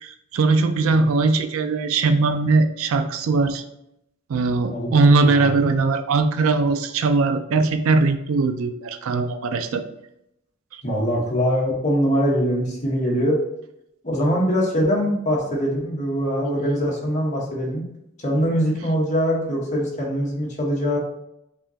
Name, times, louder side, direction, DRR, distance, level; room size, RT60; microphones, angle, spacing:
voice 1, 0.0-3.6 4.3-9.8, right 3 dB, 70° right, 9 dB, 0.4 m, -20 dB
voice 2, 4.7-5.6 10.8-13.4 14.0-17.9 18.2-21.0, equal, 35° left, -3 dB, 1.2 m, -23 dB
5.5 x 2.9 x 2.8 m, 0.80 s
head